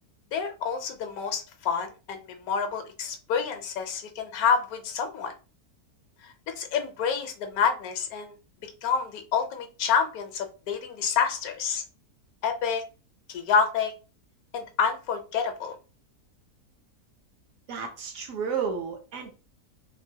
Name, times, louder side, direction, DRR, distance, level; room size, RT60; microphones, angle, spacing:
voice 1, 0.3-5.3 6.2-8.3 8.8-11.8 12.4-12.8 13.3-13.9 14.5-15.8, left 6 dB, 75° left, 7 dB, 1.0 m, -28 dB
voice 2, 17.7-19.3, right 6 dB, 70° right, 3 dB, 0.9 m, -32 dB
3.0 x 2.4 x 2.7 m, 0.33 s
omnidirectional pair, 1.6 m